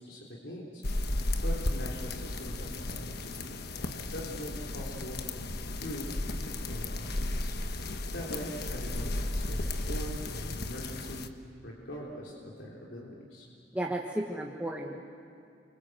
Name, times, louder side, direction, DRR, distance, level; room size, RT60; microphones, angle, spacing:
voice 1, 0.0-5.2 5.7-7.5 8.1-11.3 11.6-13.5, equal, 75° left, -4 dB, 3.7 m, -42 dB
sound 1, 0.8-11.3, left 2 dB, 60° left, 1.3 m, -34 dB
voice 2, 13.7-15.0, right 1 dB, 10° right, -1 dB, 1.5 m, -33 dB
29.5 x 25.0 x 8.0 m, 2.6 s
head